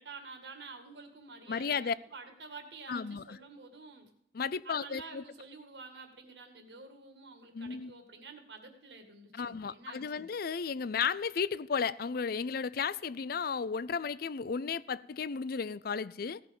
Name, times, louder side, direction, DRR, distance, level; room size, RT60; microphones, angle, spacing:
voice 1, 0.0-4.1 4.6-10.3, right 4 dB, 65° right, 2.1 m, -49 dB
voice 2, 1.5-1.9 2.9-3.4 4.3-5.2 7.5-7.9 9.3-16.4, left 6 dB, 55° left, 0.5 m, -34 dB
16.5 x 6.0 x 7.0 m
head